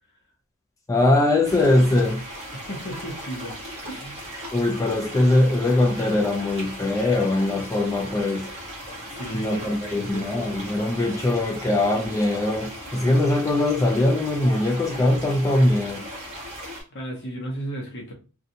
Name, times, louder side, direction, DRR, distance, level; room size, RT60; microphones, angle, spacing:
voice 1, 0.9-2.2 4.5-8.5 9.3-16.0, left 1 dB, 15° left, 0.3 m, -21 dB
sound 1, 1.4-16.8, equal, 30° right, 0.9 m, -38 dB
voice 2, 2.5-4.2 9.1-10.3 16.6-18.1, right 1 dB, 50° left, 0.7 m, -35 dB
2.5 x 2.2 x 2.7 m
head